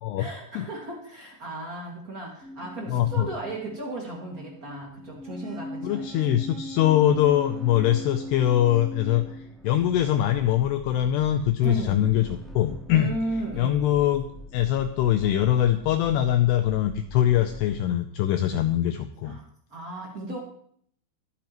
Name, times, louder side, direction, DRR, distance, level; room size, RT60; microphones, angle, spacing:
voice 1, 0.2-6.4 11.6-12.2 12.9-13.9 19.2-20.4, right 1 dB, 80° right, -3 dB, 0.8 m, -35 dB
sound 1, 2.4-17.7, left 1 dB, ahead, 1.4 m, -41 dB
voice 2, 2.9-3.3 5.8-13.1 13.6-14.3 14.5-19.4, left 12 dB, 90° left, 8 dB, 2.3 m, -23 dB
24.5 x 9.1 x 3.0 m, 0.64 s
omnidirectional pair, 5.5 m